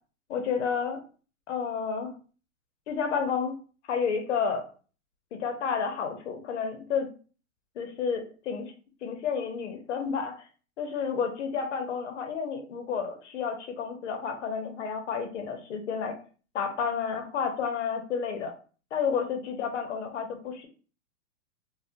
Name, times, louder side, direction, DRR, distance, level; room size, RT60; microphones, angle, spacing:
voice 1, 0.3-1.0 1.5-2.1 2.9-3.6 3.9-4.7 5.3-7.1 7.8-8.7 9.0-10.4 10.8-16.2 16.5-18.5 18.9-20.7, left 6 dB, 55° left, 6 dB, 0.7 m, -31 dB
2.7 x 2.1 x 2.5 m, 0.38 s
hypercardioid pair, 160°, 42 cm